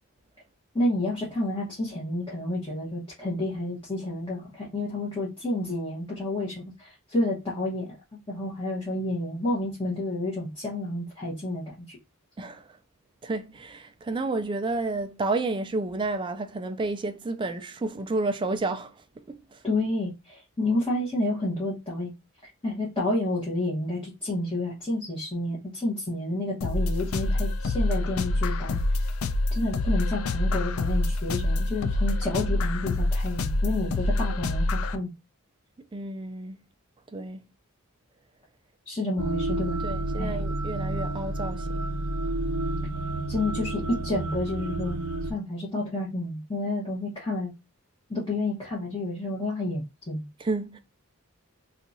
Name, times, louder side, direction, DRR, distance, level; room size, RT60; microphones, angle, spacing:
voice 1, 0.7-12.0 19.6-22.1 22.6-29.0 29.5-35.1 38.8-39.8 40.2-40.4 43.3-47.5 48.1-50.2, left 1 dB, 25° left, 1.0 m, -30 dB
voice 2, 12.4-12.8 13.2-18.9 19.3-19.6 35.9-36.6 37.1-37.4 39.8-41.8 50.4-50.8, right 3 dB, 20° right, 0.3 m, -31 dB
sound 1, 26.6-35.0, left 2 dB, 70° left, 0.4 m, -26 dB
sound 2, 39.2-45.3, right 2 dB, 90° right, 0.5 m, -30 dB
2.8 x 2.4 x 3.9 m
head